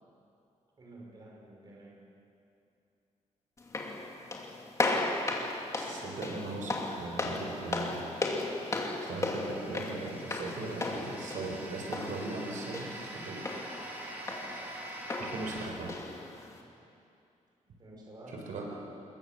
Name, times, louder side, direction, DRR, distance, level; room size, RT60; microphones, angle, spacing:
voice 1, 0.8-2.1 17.8-18.5, right 1 dB, 30° right, -2 dB, 5.6 m, -50 dB
sound 1, 3.6-16.6, left 2 dB, 25° left, 2.6 m, -36 dB
voice 2, 5.8-8.1 9.0-13.6 15.2-16.0 18.3-18.6, right 2 dB, 90° right, 0 dB, 5.3 m, -39 dB
sound 2, 7.5-15.7, right 1 dB, 15° right, 4.2 m, -45 dB
26.5 x 22.0 x 7.5 m, 2.6 s
wide cardioid pair, 170°, 13 cm